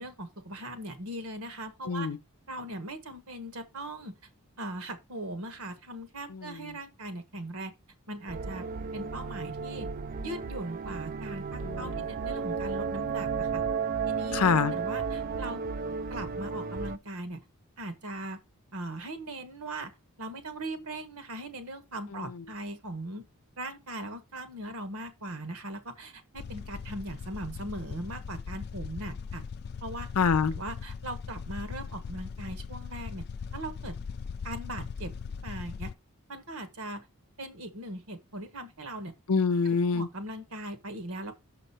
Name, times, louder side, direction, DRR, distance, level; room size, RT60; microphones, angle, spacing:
voice 1, 0.0-2.1 2.5-4.2 4.6-7.7 8.1-8.6 8.9-9.9 10.2-13.6 14.1-14.4 14.7-15.6 16.1-17.4 17.8-18.4 18.7-19.9 20.2-23.3 23.6-29.4 29.8-30.1 30.6-33.2 33.5-34.0 34.4-35.9 36.3-37.1 37.4-39.1 39.6-41.3, right 1 dB, 75° right, 1.4 m, -39 dB
voice 2, 1.9-2.2 6.3-6.8 11.6-12.0 14.3-14.7 22.1-22.4 30.2-30.5 39.3-40.1, left 5 dB, 85° left, 0.6 m, -26 dB
sound 1, 8.3-17.0, right 5 dB, 40° right, 0.4 m, -33 dB
sound 2, 26.3-35.9, left 6 dB, 45° left, 0.3 m, -39 dB
6.7 x 5.3 x 4.3 m
head